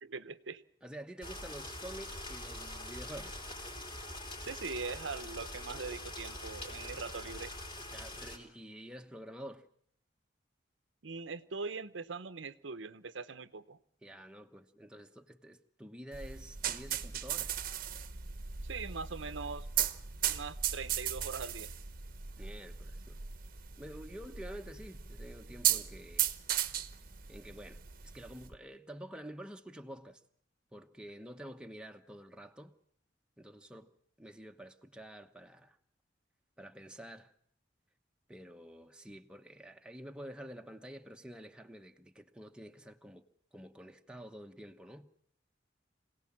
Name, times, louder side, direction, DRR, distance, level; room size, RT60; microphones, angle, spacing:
voice 1, 0.0-0.6 4.4-7.5 11.0-13.8 18.6-19.7 20.3-21.7, right 4 dB, 90° right, 0.9 m, -41 dB
voice 2, 0.8-3.5 7.9-9.7 14.0-17.5 22.4-23.2 23.8-26.3 27.3-30.2 30.7-32.7 33.4-33.9 34.2-35.8 36.6-37.3 38.3-43.2 43.5-45.1, right 1 dB, 5° right, 1.1 m, -49 dB
sound 1, 1.2-8.4, left 1 dB, 25° left, 4.0 m, -44 dB
sound 2, 16.1-28.5, right 10 dB, 50° right, 1.0 m, -37 dB
26.0 x 17.5 x 7.5 m
head